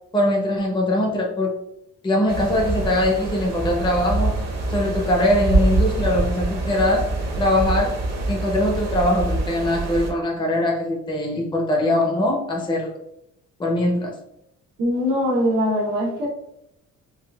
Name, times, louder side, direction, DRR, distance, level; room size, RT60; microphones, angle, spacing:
voice 1, 0.1-1.6 2.0-4.3 4.7-8.0 8.3-12.9 13.6-14.1, left 1 dB, 15° left, 0 dB, 0.6 m, -22 dB
sound 1, 2.3-10.1, right 2 dB, 55° right, 0.8 m, -25 dB
voice 2, 14.8-16.3, equal, 90° right, -5 dB, 1.0 m, -22 dB
3.8 x 2.3 x 2.2 m, 0.82 s
cardioid pair, 115°, 30 cm